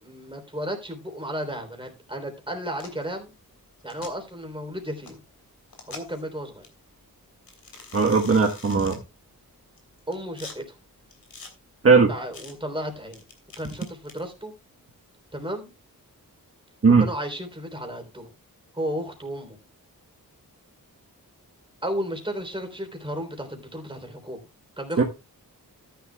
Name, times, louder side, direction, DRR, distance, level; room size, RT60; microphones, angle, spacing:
voice 1, 0.0-3.3 3.8-5.2 5.9-6.6 10.1-10.7 12.1-13.2 13.6-14.5 15.3-15.7 17.0-18.3 18.7-19.6 21.8-24.4 24.8-25.0, equal, 15° right, 4 dB, 3.4 m, -33 dB
sound 1, 2.7-3.0 3.8-4.1 5.0-5.1 5.7-6.2 6.6-6.7 7.5-9.0 9.8-10.6 11.1-11.5 12.3-12.5 13.1-14.2, left 3 dB, 75° left, 3.0 m, -44 dB
voice 2, 7.9-9.0 11.8-12.1 16.8-17.0 25.0-25.1, right 4 dB, 40° right, 2 dB, 1.3 m, -17 dB
13.5 x 10.5 x 2.3 m, 0.26 s
wide cardioid pair, 95°, 36 cm